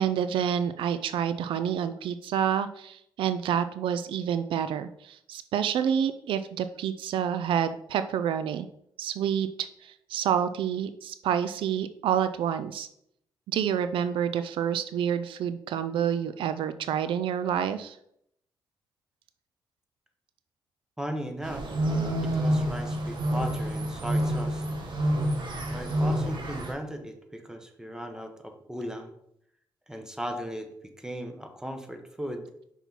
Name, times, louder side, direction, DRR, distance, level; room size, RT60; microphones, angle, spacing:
voice 1, 0.0-8.7 9.0-12.9 13.5-18.0, right 8 dB, 85° right, 11 dB, 0.4 m, -28 dB
voice 2, 21.0-21.7 22.2-24.7 25.7-29.1 29.9-30.7 31.0-32.5, equal, 5° right, 5 dB, 1.2 m, -37 dB
sound 1, 21.4-26.7, right 1 dB, 65° right, 1.4 m, -28 dB
5.8 x 5.4 x 4.5 m, 0.74 s
cardioid pair, 80°, 9 cm